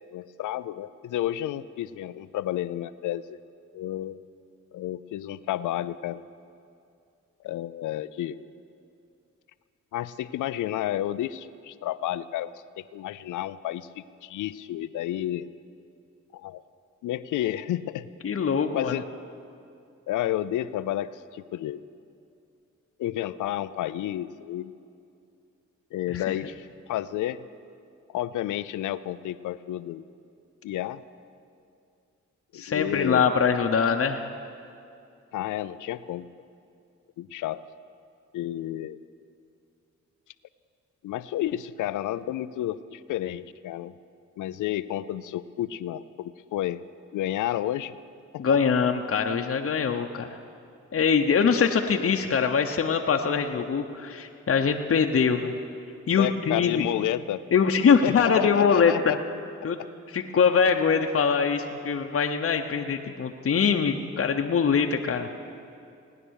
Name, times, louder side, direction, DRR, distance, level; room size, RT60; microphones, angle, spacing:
voice 1, 0.1-3.4 3.7-4.2 4.7-6.2 7.4-8.5 9.9-15.5 16.3-16.6 17.0-18.1 18.7-19.1 20.1-21.8 23.0-24.7 25.9-27.4 28.1-30.0 30.6-31.0 32.5-33.3 35.3-36.3 37.2-37.6 38.3-39.0 41.0-43.9 44.4-46.8 47.1-47.9 48.3-48.6 56.2-57.4 58.0-59.2, left 13 dB, 85° left, 16 dB, 0.5 m, -31 dB
voice 2, 18.2-18.9 26.1-26.4 32.5-34.2 48.4-50.4 50.9-55.6 56.1-56.9 57.5-58.9 59.6-59.8 60.1-65.3, left 6 dB, 45° left, 4 dB, 0.9 m, -23 dB
18.5 x 9.7 x 6.4 m, 2.5 s
supercardioid pair, 55°, 30 cm